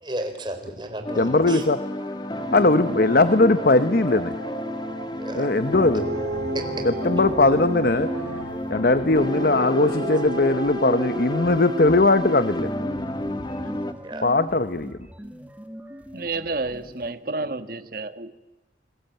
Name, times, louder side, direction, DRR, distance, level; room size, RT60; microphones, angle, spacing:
voice 1, 0.0-1.6 5.1-5.5 14.0-14.4, right 1 dB, 25° right, 6 dB, 4.1 m, -34 dB
sound 1, 1.1-13.9, left 1 dB, 25° left, 1.5 m, -31 dB
voice 2, 1.2-1.8 2.5-4.3 5.4-6.1 6.8-8.1 8.7-12.7 14.2-15.0, left 2 dB, 50° left, 12 dB, 0.9 m, -19 dB
Dog, 2.4-5.2 5.6-8.7 9.1-12.7, right 2 dB, 75° right, 2.5 m, -34 dB
sound 2, 5.5-5.6 5.9-17.1, equal, 10° right, 1.8 m, -41 dB
voice 3, 16.1-18.3, right 3 dB, 50° right, 10 dB, 1.5 m, -30 dB
29.0 x 21.5 x 9.2 m, 1.1 s
head